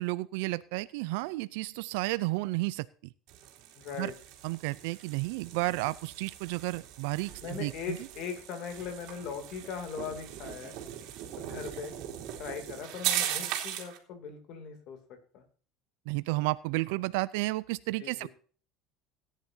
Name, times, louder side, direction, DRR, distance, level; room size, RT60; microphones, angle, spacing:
voice 1, 0.0-2.9 4.0-4.1 4.4-8.0 16.1-18.3, right 21 dB, 75° right, 16 dB, 0.5 m, -32 dB
sound 1, 3.3-14.0, right 11 dB, 55° right, 2.9 m, -39 dB
voice 2, 3.8-4.1 7.4-10.8 11.4-11.9 12.4-15.4 18.0-18.3, left 6 dB, 45° left, 6 dB, 2.8 m, -40 dB
17.5 x 10.0 x 2.8 m, 0.41 s
cardioid pair, 175°, 0 cm